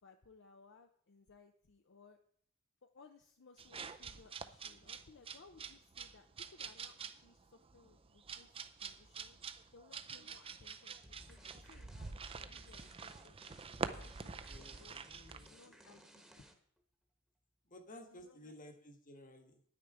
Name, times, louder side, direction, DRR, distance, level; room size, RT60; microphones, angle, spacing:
voice 1, 0.0-2.2 2.8-9.4 9.7-13.5 13.9-14.5 14.8-15.0 15.4-16.2 18.1-18.5, left 4 dB, 60° left, 6 dB, 0.7 m, -62 dB
sound 1, 3.6-15.5, right 5 dB, 25° right, 0.5 m, -47 dB
sound 2, 11.0-16.8, equal, ahead, 1.2 m, -60 dB
voice 2, 14.5-15.8 17.6-19.6, left 1 dB, 40° left, 5 dB, 1.5 m, -56 dB
9.5 x 9.5 x 4.9 m, 0.63 s
head